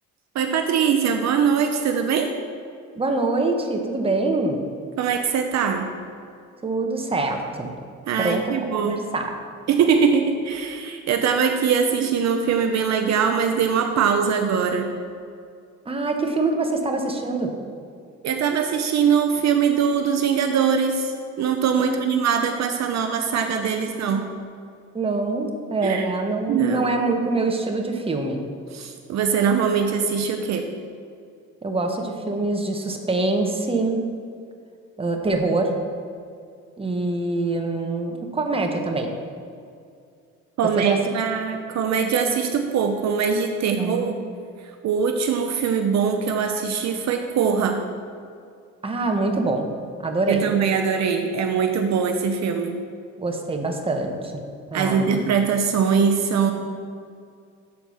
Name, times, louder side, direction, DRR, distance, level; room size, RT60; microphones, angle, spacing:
voice 1, 0.3-2.3 5.0-5.9 8.1-9.0 9.7-14.9 18.2-24.2 25.8-26.1 26.5-26.9 28.7-30.7 40.6-44.2 44.6-47.8 50.3-52.8 54.7-56.5, right 6 dB, 65° right, 5 dB, 0.7 m, -22 dB
voice 2, 3.0-4.6 6.6-7.7 8.2-9.3 15.8-17.5 21.8-22.1 23.8-23.9 24.9-28.4 31.6-34.0 35.0-35.7 36.8-39.1 40.8-41.0 43.8-44.2 48.8-49.7 50.0-50.4 53.2-54.4 54.7-55.2, right 2 dB, 20° right, 3 dB, 1.0 m, -24 dB
7.0 x 4.4 x 6.3 m, 2.3 s
cardioid pair, 90°, 30 cm